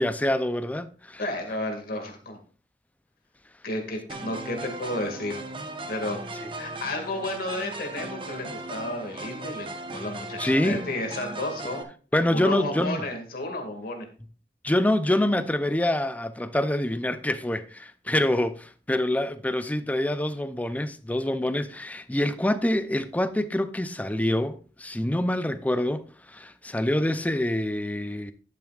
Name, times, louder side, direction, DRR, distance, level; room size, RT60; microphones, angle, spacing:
voice 1, 0.0-1.2 10.4-10.9 12.1-13.0 14.6-28.3, left 1 dB, 10° left, 0.5 m, -26 dB
voice 2, 1.2-2.4 3.6-5.4 5.9-6.2 6.6-11.8 12.3-14.1, left 1 dB, 55° left, 2.1 m, -32 dB
sound 1, 4.1-11.8, right 2 dB, 30° right, 1.1 m, -37 dB
11.0 x 9.2 x 2.4 m
head